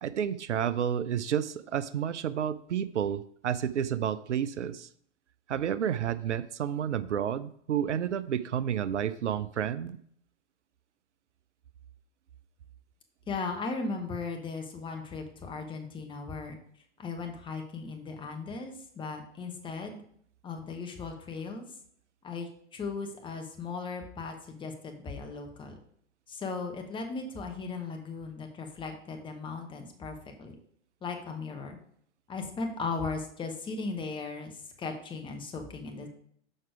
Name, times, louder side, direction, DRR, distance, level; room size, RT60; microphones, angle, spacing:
voice 1, 0.0-4.9 5.5-10.0, right 9 dB, 75° right, 15 dB, 0.6 m, -30 dB
voice 2, 13.3-16.6 17.0-20.0 20.4-21.6 22.2-25.8 26.3-30.5 31.0-31.8 32.3-36.1, left 4 dB, 15° left, 3 dB, 1.0 m, -37 dB
6.6 x 5.9 x 4.8 m, 0.63 s
figure-of-eight pair, 115°, 36 cm